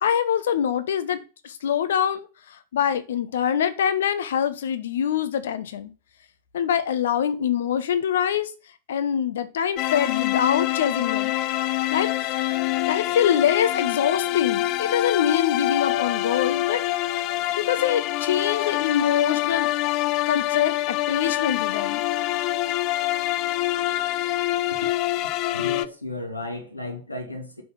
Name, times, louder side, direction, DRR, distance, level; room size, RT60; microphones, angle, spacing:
voice 1, 0.0-2.3 2.7-5.9 6.5-8.5 8.9-11.3 11.9-12.1 12.9-16.8 17.6-22.0, left 9 dB, 60° left, 0.9 m, -24 dB
sound 1, 9.8-25.9, left 15 dB, 40° left, 0.5 m, -25 dB
voice 2, 25.5-27.6, left 2 dB, 85° left, 1.6 m, -34 dB
5.5 x 5.4 x 5.8 m
figure-of-eight pair, 90°, 0 cm